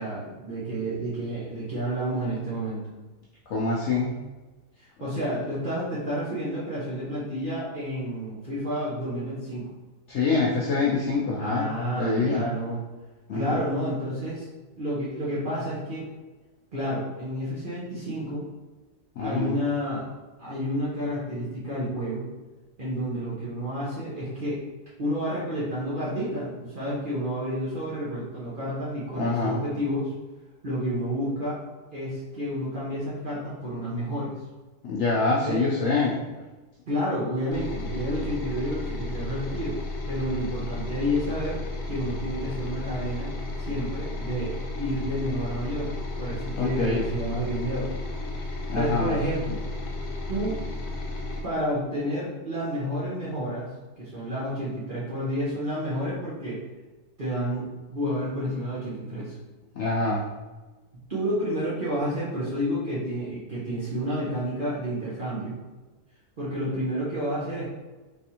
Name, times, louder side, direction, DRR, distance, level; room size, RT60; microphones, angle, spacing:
voice 1, 0.0-2.8 4.8-9.7 11.4-12.8 13.3-14.5 14.8-16.1 16.7-18.5 19.2-20.1 20.4-22.3 22.8-24.6 25.0-30.1 30.6-31.6 31.9-34.3 35.5-35.6 36.9-39.8 40.1-41.6 41.9-45.9 46.2-47.9 48.7-49.6 50.3-50.6 51.4-53.7 54.0-56.6 57.2-59.3 61.1-65.6 66.4-67.7, equal, 40° right, -8 dB, 0.8 m, -30 dB
voice 2, 3.5-4.2 10.1-11.7 12.0-12.4 13.3-13.6 19.2-19.6 29.2-29.6 34.8-36.2 46.6-47.0 48.7-49.2 59.8-60.2, left 3 dB, 75° left, -4 dB, 0.6 m, -25 dB
sound 1, 37.5-51.4, left 2 dB, 90° left, 1.3 m, -33 dB
3.4 x 3.3 x 2.8 m, 1.2 s
omnidirectional pair, 1.8 m